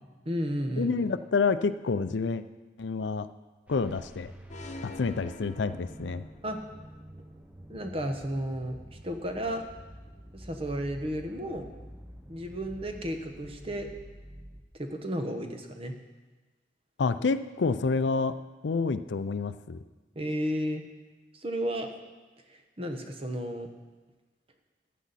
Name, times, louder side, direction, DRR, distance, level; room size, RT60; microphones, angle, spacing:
voice 1, 0.2-1.1 6.4-6.6 7.7-8.8 9.0-9.6 10.3-11.7 12.3-13.9 14.8-15.9 20.1-20.8 21.3-21.9 22.5-23.7, equal, 35° right, 5 dB, 1.1 m, -33 dB
voice 2, 0.8-2.4 2.8-3.3 3.7-4.3 4.8-6.2 17.0-18.3 18.6-19.8, left 4 dB, 85° left, 12 dB, 0.5 m, -28 dB
sound 1, 3.7-14.6, equal, 10° right, 0.7 m, -48 dB
sound 2, 4.5-6.5, left 2 dB, 45° left, 0.8 m, -45 dB
14.5 x 9.3 x 4.2 m, 1.3 s
head